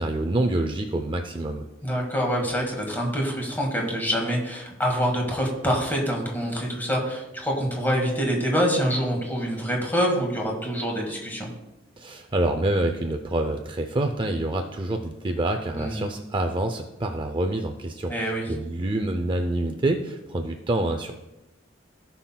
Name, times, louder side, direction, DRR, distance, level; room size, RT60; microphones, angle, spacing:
voice 1, 0.0-1.7 12.0-21.1, right 1 dB, 25° right, 5 dB, 0.4 m, -27 dB
voice 2, 1.8-11.5 15.7-16.1 18.1-18.5, equal, 10° left, 0 dB, 1.7 m, -26 dB
17.0 x 5.7 x 2.2 m, 0.97 s
head